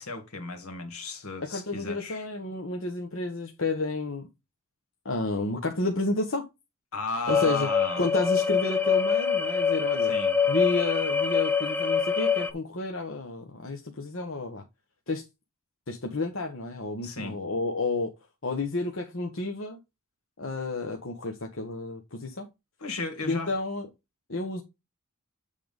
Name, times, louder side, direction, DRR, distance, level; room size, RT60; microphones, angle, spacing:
voice 1, 0.0-2.3 6.9-8.0 10.1-10.3 17.0-17.4 22.8-23.5, left 3 dB, 75° left, 1.9 m, -34 dB
voice 2, 1.5-4.3 5.0-6.5 7.3-7.7 8.0-10.1 10.4-14.6 15.1-15.2 15.9-18.1 18.4-19.8 20.4-22.5 23.3-23.9 24.3-24.6, left 2 dB, 60° left, 1.1 m, -31 dB
sound 1, 7.3-12.5, left 6 dB, 10° left, 0.5 m, -25 dB
8.5 x 3.7 x 5.2 m
head